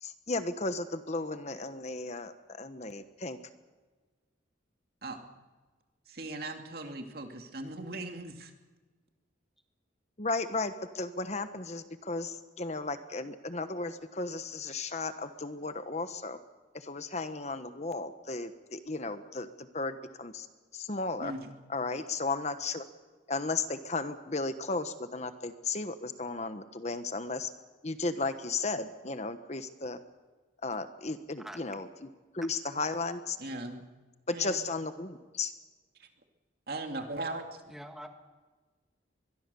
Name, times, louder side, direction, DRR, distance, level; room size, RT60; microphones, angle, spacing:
voice 1, 0.0-3.4 10.2-16.4 16.7-20.5 20.7-21.3 21.7-22.8 23.3-27.5 27.8-30.0 30.6-32.1 32.3-33.4 34.3-35.5, left 3 dB, 35° left, 10 dB, 1.1 m, -35 dB
voice 2, 6.1-8.5 21.2-21.5 33.4-33.9 34.3-34.6 36.0-36.1 36.7-37.6, right 2 dB, 55° right, 4 dB, 2.5 m, -39 dB
voice 3, 37.7-38.1, equal, ahead, 5 dB, 1.7 m, -44 dB
23.5 x 22.5 x 7.0 m, 1.3 s
head